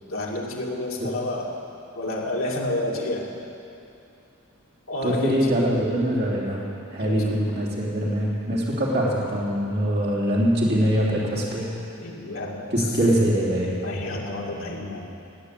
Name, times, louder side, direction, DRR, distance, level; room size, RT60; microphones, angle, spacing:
voice 1, 0.1-1.5 1.9-3.3 4.9-5.7 7.0-7.2 12.0-12.9 13.8-15.0, left 2 dB, 65° left, -2 dB, 2.5 m, -29 dB
voice 2, 5.0-6.6 6.9-11.7 12.7-13.7, equal, 50° right, -6 dB, 3.2 m, -23 dB
19.5 x 8.9 x 8.3 m, 2.8 s
head